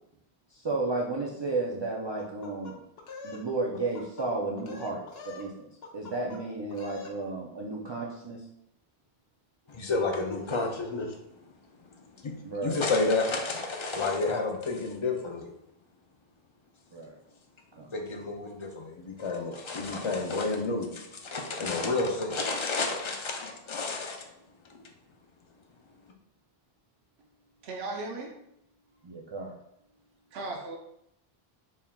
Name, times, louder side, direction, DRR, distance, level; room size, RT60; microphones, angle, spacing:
voice 1, 0.5-2.7 3.2-5.7 5.9-8.4 12.4-12.8 16.9-17.2 17.8-17.9 29.0-29.5, right 3 dB, 45° right, -2 dB, 0.3 m, -33 dB
sound 1, 2.2-3.4 3.7-4.3 4.6-5.5 5.8-6.4 6.7-7.2, left 4 dB, 75° left, 0.8 m, -44 dB
voice 2, 9.7-11.1 12.2-12.3 12.6-15.5 17.9-24.3, left 3 dB, 45° left, 3 dB, 0.4 m, -30 dB
voice 3, 27.6-28.3 30.3-30.8, right 2 dB, 80° right, 0 dB, 0.9 m, -36 dB
4.3 x 3.5 x 2.2 m, 0.79 s
omnidirectional pair, 1.0 m